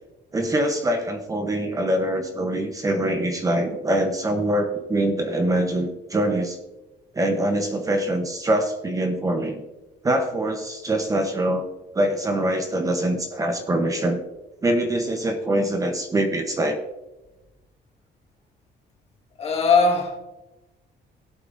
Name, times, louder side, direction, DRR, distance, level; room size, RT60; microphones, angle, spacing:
voice 1, 0.3-6.6 7.1-9.6 10.0-11.6 11.9-14.2 14.6-16.8, right 1 dB, 20° right, 0.9 m, -24 dB
voice 2, 19.4-20.2, left 4 dB, 35° left, 1.7 m, -19 dB
18.0 x 8.3 x 2.6 m
cardioid pair, 165°, 18 cm